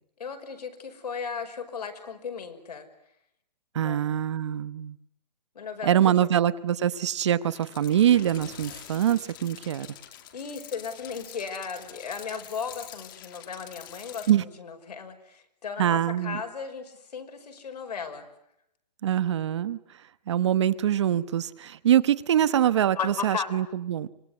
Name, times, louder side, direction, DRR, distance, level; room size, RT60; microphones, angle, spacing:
voice 1, 0.2-2.9 3.7-4.1 5.5-6.3 10.3-18.2 23.0-23.5, left 6 dB, 70° left, 6 dB, 5.7 m, -36 dB
voice 2, 3.7-5.0 5.8-9.9 14.3-14.4 15.8-16.4 19.0-19.8 20.3-24.1, right 10 dB, 45° right, 16 dB, 1.0 m, -24 dB
sound 1, 7.4-14.3, left 11 dB, 30° left, 2.1 m, -46 dB
25.0 x 21.5 x 9.7 m, 0.79 s
hypercardioid pair, 170°, 21 cm